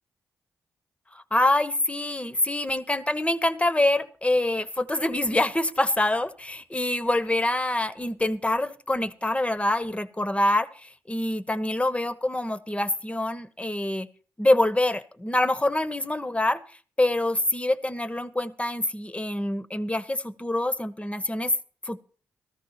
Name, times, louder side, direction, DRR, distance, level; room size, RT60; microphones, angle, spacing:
voice 1, 1.1-14.1 14.4-16.6 17.0-21.5 21.8-22.0, left 1 dB, 15° left, 13 dB, 1.1 m, -25 dB
13.5 x 13.5 x 4.4 m, 0.41 s
supercardioid pair, 40°, 7 cm